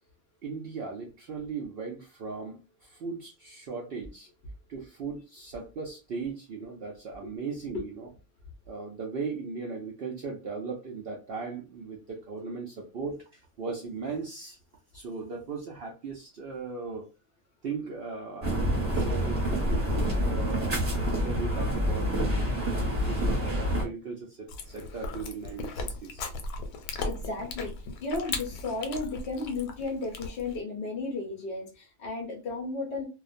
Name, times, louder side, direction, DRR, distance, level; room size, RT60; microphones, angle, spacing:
voice 1, 0.4-4.3 4.7-8.1 8.7-14.6 14.9-17.1 17.6-20.8 21.2-26.3 26.9-27.0, right 4 dB, 70° right, -1 dB, 0.5 m, -38 dB
sound 1, 18.4-23.8, equal, 30° right, 0.9 m, -27 dB
Chewing mastication, 24.5-30.6, left 3 dB, 90° left, 1.1 m, -37 dB
voice 2, 27.0-33.0, left 3 dB, 60° left, 0 dB, 0.6 m, -34 dB
2.4 x 2.1 x 2.4 m, 0.29 s
omnidirectional pair, 1.5 m